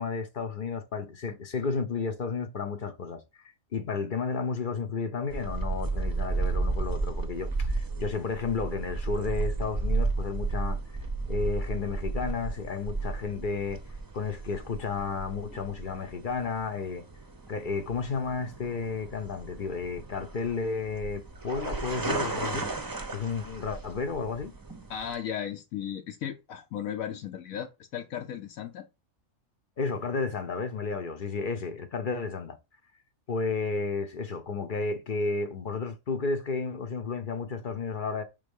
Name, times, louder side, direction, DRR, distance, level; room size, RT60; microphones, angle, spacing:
voice 1, 0.0-10.8 11.3-13.8 14.1-17.0 17.5-22.7 23.1-24.5 29.8-32.6 33.3-38.2, left 4 dB, 45° left, 0.8 m, -32 dB
sound 1, 5.3-25.1, right 3 dB, 20° right, 0.6 m, -34 dB
voice 2, 24.9-28.9, left 9 dB, 85° left, 1.1 m, -36 dB
5.2 x 3.7 x 5.3 m
omnidirectional pair, 1.4 m